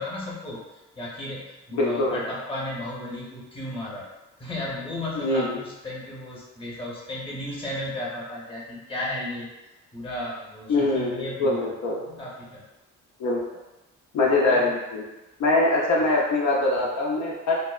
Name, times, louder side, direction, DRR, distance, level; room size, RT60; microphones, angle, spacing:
voice 1, 0.0-4.1 4.4-9.5 9.9-11.7 12.0-12.6 14.2-14.7, left 1 dB, 15° left, -5 dB, 0.8 m, -34 dB
voice 2, 1.7-2.2 5.1-5.6 10.7-12.0 13.2-13.4 14.1-15.0 15.4-17.5, left 2 dB, 65° left, -3 dB, 0.5 m, -23 dB
2.6 x 2.0 x 2.3 m, 1.0 s
cardioid pair, 90°, 30 cm